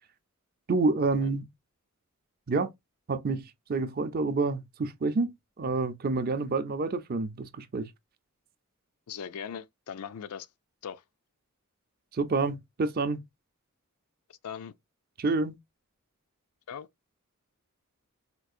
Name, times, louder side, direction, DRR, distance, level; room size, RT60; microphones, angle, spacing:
voice 1, 0.7-1.5 2.5-2.7 3.1-3.4 3.7-7.9 12.1-13.2 15.2-15.6, right 3 dB, 45° right, 0.5 m, -28 dB
voice 2, 9.1-10.5 10.8-11.0 14.3-14.7 16.7-16.9, left 7 dB, 85° left, 0.4 m, -40 dB
4.5 x 2.4 x 2.5 m
head